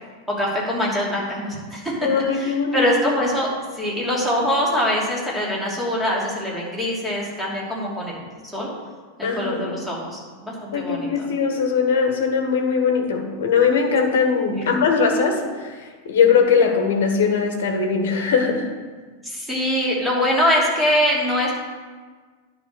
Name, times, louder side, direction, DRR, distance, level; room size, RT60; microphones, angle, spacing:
voice 1, 0.3-8.2 8.5-8.7 9.2-11.3 14.5-14.8 19.2-21.5, equal, 5° right, -5 dB, 2.9 m, -23 dB
voice 2, 2.0-2.8 9.2-9.6 10.7-18.7, left 5 dB, 55° left, 4 dB, 1.4 m, -20 dB
10.0 x 5.1 x 6.5 m, 1.4 s
figure-of-eight pair, 90°, 0 cm